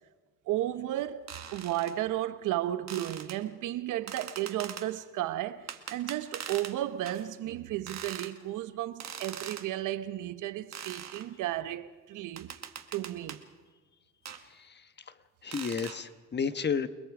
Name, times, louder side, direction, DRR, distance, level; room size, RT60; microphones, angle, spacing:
voice 1, 0.5-12.5 12.9-13.4, right 13 dB, 90° right, 1.1 m, -34 dB
sound 1, 1.3-1.9 2.9-3.4 4.1-4.9 5.7-6.8 7.1-7.2 7.9-8.3 9.0-9.7 10.7-11.3 12.4-13.4 14.3-14.4 15.5-16.0, right 8 dB, 60° right, 1.8 m, -42 dB
voice 2, 14.5-15.1 15.4-16.9, left 6 dB, 35° left, 1.2 m, -32 dB
30.0 x 20.5 x 5.0 m
cardioid pair, 90°, 30 cm